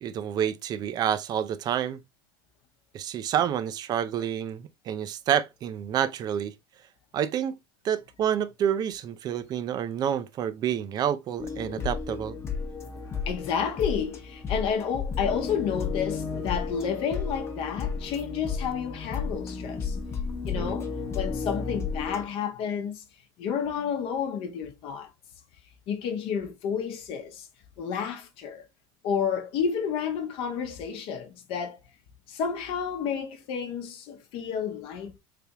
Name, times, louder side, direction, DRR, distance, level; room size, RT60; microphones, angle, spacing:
voice 1, 0.0-2.0 2.9-6.5 7.1-7.6 7.8-12.4 20.5-20.7, right 9 dB, 35° right, 0.5 m, -28 dB
sound 1, 11.4-22.3, left 5 dB, 20° left, 0.9 m, -33 dB
voice 2, 13.3-20.0 20.4-23.0 23.4-25.1 25.9-27.5 27.8-28.6 29.0-31.8 32.3-35.2, left 7 dB, 55° left, 0.8 m, -31 dB
3.4 x 3.4 x 2.8 m
supercardioid pair, 125°, 11 cm